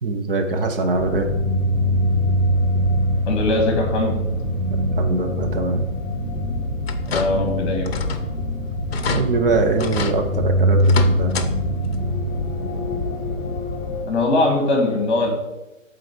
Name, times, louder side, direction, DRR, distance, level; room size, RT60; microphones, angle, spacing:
voice 1, 0.0-1.3 5.0-5.9 9.1-11.3, right 3 dB, 45° right, 5 dB, 0.8 m, -22 dB
sound 1, 0.9-14.0, equal, 5° left, 1.1 m, -23 dB
voice 2, 3.3-4.2 7.1-7.9 14.1-15.3, left 2 dB, 25° left, 1 dB, 1.9 m, -20 dB
sound 2, 6.8-7.5 7.8-8.3 8.6-8.7 8.9-9.2 9.8-10.2 10.8-11.5 11.8-12.0 13.3-13.4 13.9-14.0, left 6 dB, 50° left, 0.7 m, -28 dB
7.6 x 4.0 x 4.5 m, 1.0 s
hypercardioid pair, 150°, 40 cm